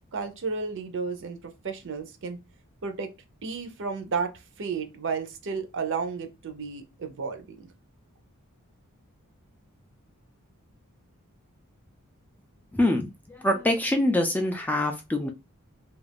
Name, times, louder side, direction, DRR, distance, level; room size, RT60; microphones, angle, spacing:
voice 1, 0.1-1.4 1.6-2.4 2.8-3.1 3.4-4.3 4.6-7.7, right 5 dB, 55° right, 0.6 m, -32 dB
voice 2, 12.7-15.3, left 1 dB, 10° left, 0.3 m, -25 dB
2.4 x 2.3 x 3.3 m
head